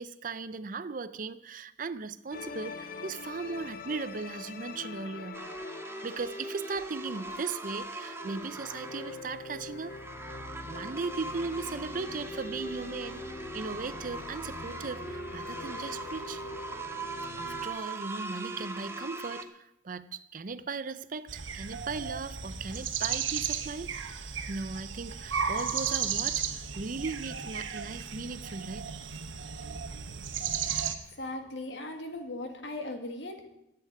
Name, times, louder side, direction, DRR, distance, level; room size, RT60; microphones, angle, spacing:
voice 1, 0.0-5.4 6.0-10.0 10.6-13.3 13.5-16.4 17.3-23.9 24.5-28.9, right 4 dB, 45° right, 0.5 m, -37 dB
sound 1, 2.3-17.7, left 3 dB, 50° left, 0.8 m, -44 dB
sound 2, 5.3-19.4, right 2 dB, 15° right, 0.9 m, -40 dB
sound 3, 21.3-31.0, right 7 dB, 90° right, 1.2 m, -34 dB
voice 2, 31.1-33.5, left 2 dB, 70° left, 2.1 m, -38 dB
14.0 x 8.4 x 8.3 m
head